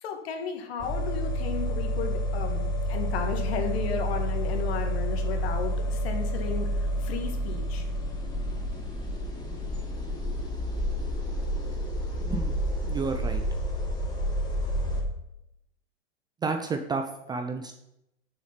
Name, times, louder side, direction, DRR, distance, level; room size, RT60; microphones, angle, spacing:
voice 1, 0.0-7.9, left 6 dB, 60° left, 5 dB, 1.7 m, -34 dB
sound 1, 0.8-15.0, equal, 10° left, 1.8 m, -29 dB
voice 2, 12.2-12.6 12.8-13.4 16.4-17.7, right 4 dB, 10° right, 6 dB, 0.5 m, -31 dB
6.6 x 6.2 x 5.8 m, 0.82 s
hypercardioid pair, 115°, 35 cm